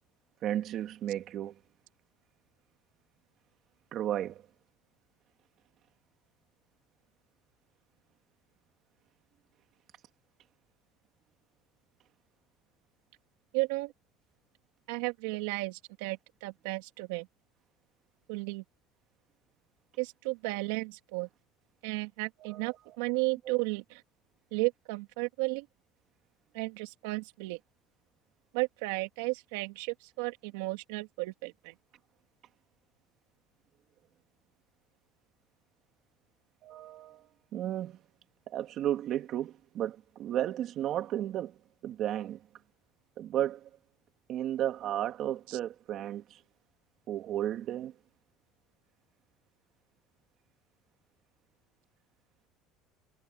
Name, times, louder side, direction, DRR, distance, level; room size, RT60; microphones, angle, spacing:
voice 1, 0.4-1.6 3.9-4.4 22.4-23.0 23.5-23.6 36.6-38.0 38.5-42.4 43.2-43.7 44.3-46.4 47.1-47.9, right 11 dB, 45° right, 2.8 m, -34 dB
voice 2, 13.5-13.9 14.9-17.3 18.3-18.6 20.0-21.3 21.8-24.0 24.5-25.7 26.5-27.6 28.5-31.7 45.5-45.6, right 25 dB, 90° right, 2.8 m, -34 dB
cardioid pair, 145°, 0 cm